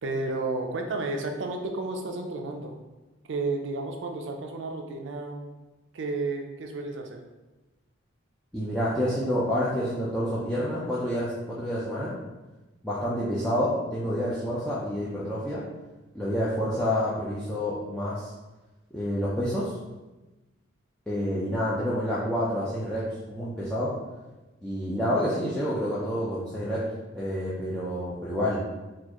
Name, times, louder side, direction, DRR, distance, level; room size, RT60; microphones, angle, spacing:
voice 1, 0.0-2.8 3.3-5.4 5.9-7.2, right 3 dB, 60° right, 4 dB, 0.4 m, -32 dB
voice 2, 8.5-12.1 12.8-15.6 16.1-18.3 18.9-19.7 21.1-23.9 24.6-26.8 27.1-28.6, equal, 5° left, -9 dB, 0.4 m, -28 dB
4.1 x 2.4 x 2.9 m, 1.1 s
head